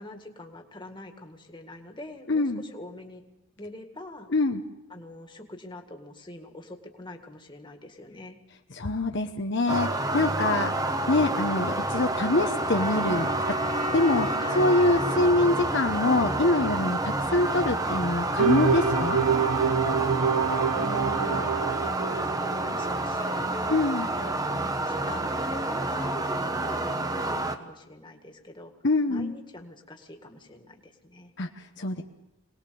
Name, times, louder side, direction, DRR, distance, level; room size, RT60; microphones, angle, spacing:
voice 1, 0.0-3.2 3.6-4.3 4.9-8.4 14.4-14.7 20.7-21.6 22.2-23.8 24.2-24.4 24.9-28.7 29.1-31.3, left 1 dB, 20° left, 4 dB, 1.9 m, -44 dB
voice 2, 2.3-2.6 4.3-4.6 8.7-10.7 11.1-13.3 13.9-19.2 23.7-24.1 28.8-29.3 31.4-32.0, left 2 dB, 55° left, 4 dB, 1.0 m, -25 dB
sound 1, 9.7-27.6, right 2 dB, 15° right, 1.1 m, -29 dB
sound 2, 11.9-16.9, right 1 dB, 35° right, 2.6 m, -36 dB
sound 3, 18.4-23.0, right 6 dB, 80° right, 0.8 m, -26 dB
24.5 x 19.5 x 6.9 m, 0.95 s
head